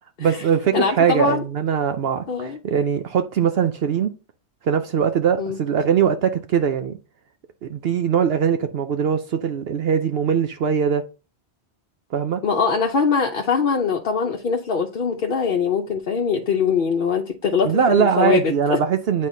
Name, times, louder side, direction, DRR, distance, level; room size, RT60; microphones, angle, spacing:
voice 1, 0.2-4.1 4.6-7.0 7.6-11.0 12.1-12.4 17.6-19.3, right 7 dB, 65° right, 0.8 m, -21 dB
voice 2, 0.7-1.4 2.3-2.6 5.4-5.6 12.4-18.4 18.7-18.8, left 5 dB, 55° left, 0.8 m, -22 dB
9.0 x 4.2 x 2.6 m
omnidirectional pair, 1.2 m